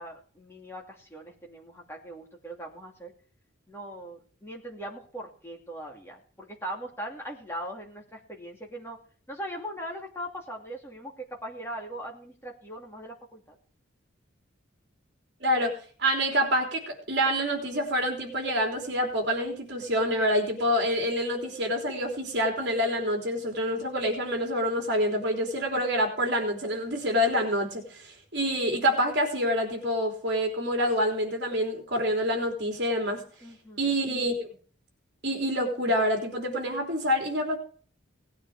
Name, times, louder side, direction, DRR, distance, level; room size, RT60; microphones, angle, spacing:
voice 1, 0.0-3.1 3.7-9.0 9.3-13.6 33.4-33.9, right 1 dB, 10° left, 0 dB, 2.7 m, -40 dB
voice 2, 15.4-33.2 33.8-34.5 35.2-37.6, equal, 55° right, 2 dB, 3.6 m, -27 dB
18.0 x 9.3 x 4.9 m, 0.43 s
head